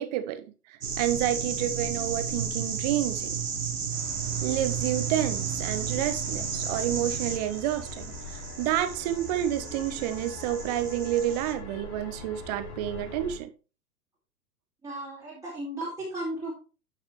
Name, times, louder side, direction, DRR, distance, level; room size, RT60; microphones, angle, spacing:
voice 1, 0.0-3.4 4.4-13.5, right 12 dB, 30° right, 0.7 m, -29 dB
sound 1, 0.8-11.5, right 6 dB, 75° right, 1.5 m, -33 dB
sound 2, 3.9-13.4, left 3 dB, 10° left, 0.4 m, -42 dB
voice 2, 14.8-16.5, right 1 dB, 5° right, 1.9 m, -35 dB
9.8 x 5.8 x 3.0 m
figure-of-eight pair, 105°, 45 cm